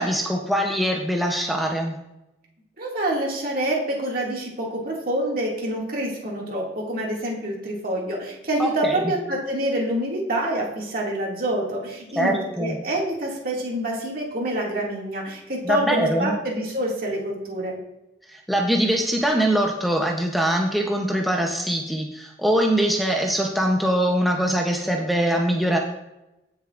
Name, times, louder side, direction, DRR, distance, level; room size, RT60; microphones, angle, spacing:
voice 1, 0.0-1.9 8.6-9.1 12.2-12.8 15.6-16.4 18.3-25.8, right 1 dB, ahead, 0 dB, 0.7 m, -23 dB
voice 2, 2.8-17.7, right 1 dB, 55° right, -2 dB, 2.2 m, -27 dB
15.5 x 6.8 x 2.5 m, 0.93 s
head